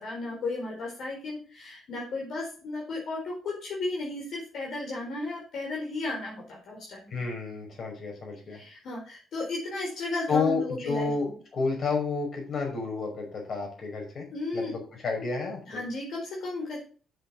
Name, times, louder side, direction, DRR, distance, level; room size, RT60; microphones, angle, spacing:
voice 1, 0.0-7.1 8.5-11.4 14.3-14.7 15.7-16.8, left 2 dB, 70° left, -2 dB, 4.4 m, -34 dB
voice 2, 7.1-8.6 10.3-11.3 11.5-14.3 14.5-15.8, left 4 dB, 55° left, 1 dB, 5.5 m, -30 dB
8.6 x 7.0 x 5.9 m, 0.39 s
cardioid pair, 90°, 0 cm